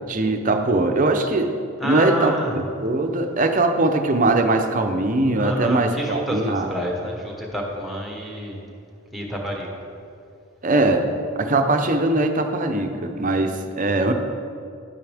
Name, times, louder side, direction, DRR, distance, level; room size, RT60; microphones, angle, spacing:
voice 1, 0.1-1.6 1.8-6.7 10.6-11.1 11.4-14.1, right 2 dB, 40° right, 6 dB, 0.6 m, -21 dB
voice 2, 1.8-2.6 5.4-8.6 9.1-9.7, equal, ahead, -1 dB, 1.2 m, -28 dB
11.5 x 9.3 x 3.5 m, 2.5 s
head